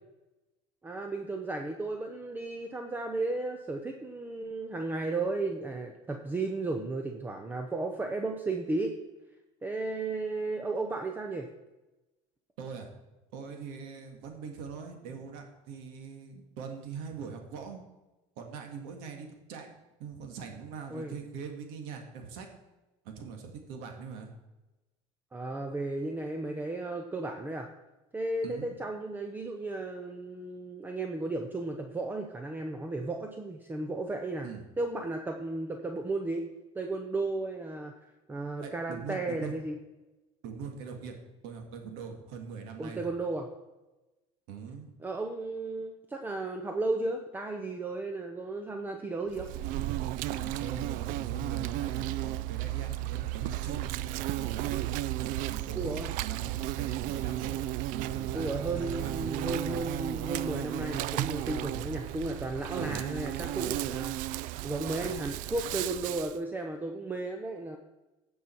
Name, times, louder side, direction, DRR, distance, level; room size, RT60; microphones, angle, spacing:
voice 1, 0.8-8.9 9.6-11.5 20.9-21.1 25.3-27.7 28.1-34.5 34.8-36.4 36.7-37.9 38.3-39.8 42.8-43.5 45.0-49.5 55.8-56.1 58.3-67.8, right 2 dB, 15° right, 4 dB, 0.7 m, -34 dB
voice 2, 12.6-12.9 13.3-17.8 18.4-19.7 20.0-22.5 23.0-24.3 28.4-28.8 34.4-34.6 38.6-39.5 40.4-41.2 41.4-43.1 44.5-44.9 50.3-54.9 55.2-57.6 57.9-59.6 62.8-63.1, right 6 dB, 85° right, 3 dB, 1.9 m, -42 dB
Insect, 49.3-66.4, right 15 dB, 65° right, 0.4 m, -34 dB
16.0 x 5.5 x 4.5 m, 1.1 s
cardioid pair, 140°, 15 cm